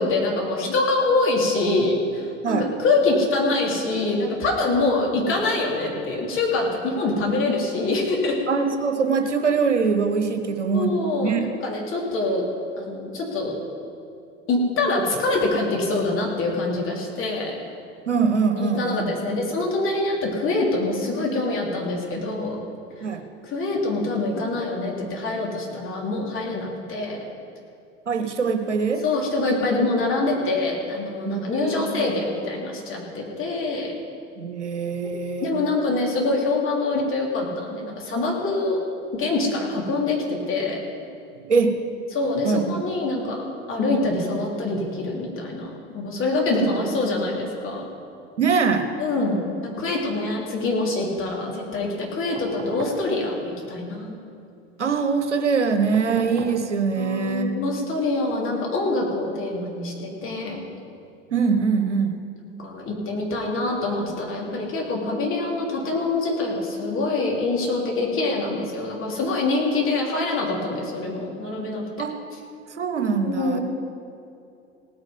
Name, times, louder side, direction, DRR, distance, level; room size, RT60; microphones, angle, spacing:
voice 1, 0.0-8.4 10.7-12.5 12.8-13.6 14.5-17.6 18.6-22.6 23.4-27.2 29.0-33.9 35.4-38.8 39.2-40.8 42.1-43.4 43.7-47.8 49.0-54.2 57.0-60.6 62.6-71.8 73.2-73.6, left 2 dB, 35° left, -2 dB, 3.4 m, -25 dB
voice 2, 8.5-11.5 18.1-19.0 23.0-23.2 28.1-29.0 31.3-32.0 34.4-35.7 41.4-41.8 42.4-42.8 46.6-46.7 48.4-48.9 54.8-57.5 61.3-62.2 72.0-72.1 72.8-73.6, right 5 dB, 80° right, 7 dB, 1.1 m, -23 dB
sound 1, 52.4-53.1 55.9-56.6 58.3-58.4, right 4 dB, 35° right, 3.2 m, -38 dB
18.0 x 9.1 x 5.4 m, 2.6 s
figure-of-eight pair, 70°, 35 cm